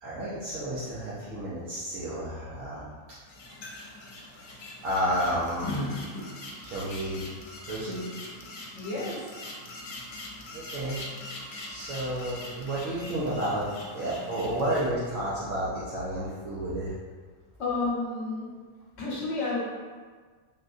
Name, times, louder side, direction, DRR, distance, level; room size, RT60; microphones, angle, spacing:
voice 1, 0.0-2.8 4.8-5.9 6.6-7.2 7.7-8.0 10.5-11.0 11.7-13.7 13.9-16.9, right 1 dB, 80° right, -9 dB, 1.0 m, -31 dB
sound 1, 3.3-14.9, left 1 dB, 80° left, 1.0 m, -41 dB
voice 2, 8.8-9.3 17.6-18.5 19.0-19.6, left 3 dB, 60° left, -5 dB, 1.0 m, -30 dB
3.5 x 2.6 x 2.3 m, 1.5 s
omnidirectional pair, 1.4 m